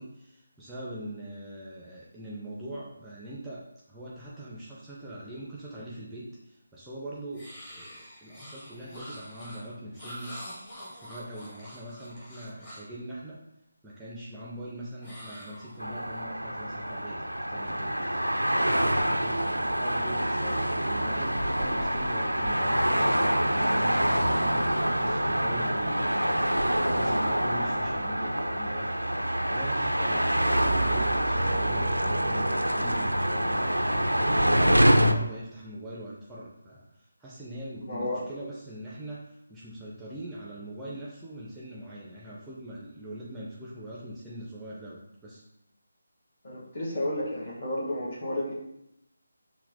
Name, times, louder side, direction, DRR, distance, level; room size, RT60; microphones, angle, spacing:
voice 1, 0.0-10.6 10.9-13.4 13.8-18.5 19.0-28.9 29.4-45.4, right 1 dB, 5° right, -6 dB, 0.4 m, -42 dB
sound 1, 7.3-13.0 15.0-16.2, equal, 20° left, 0.9 m, -45 dB
sound 2, 15.8-35.1, equal, 90° right, 0.3 m, -26 dB
voice 2, 37.8-38.2 46.4-48.5, left 1 dB, 40° left, -5 dB, 1.1 m, -32 dB
5.7 x 2.1 x 2.7 m, 0.82 s
figure-of-eight pair, 155°, 0 cm